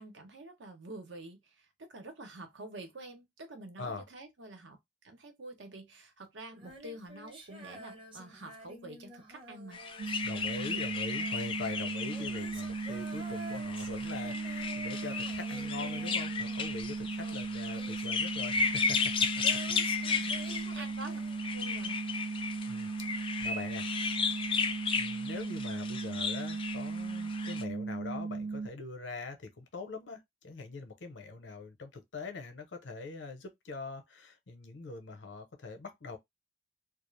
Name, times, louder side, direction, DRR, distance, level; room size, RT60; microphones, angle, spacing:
voice 1, 0.0-4.8 5.0-9.8 10.5-10.7 20.1-20.3 20.7-21.3 21.5-22.0, right 2 dB, 80° right, 0.8 m, -47 dB
Female singing, 6.5-21.9 23.4-23.5, right 2 dB, 30° right, 0.7 m, -50 dB
sound 1, 9.7-27.6, left 5 dB, 30° left, 0.3 m, -35 dB
sound 2, 10.0-28.7, right 4 dB, 50° right, 0.3 m, -37 dB
voice 2, 10.2-19.3 19.9-20.4 22.7-23.9 24.9-36.2, left 4 dB, 75° left, 0.7 m, -43 dB
2.4 x 2.1 x 3.1 m
head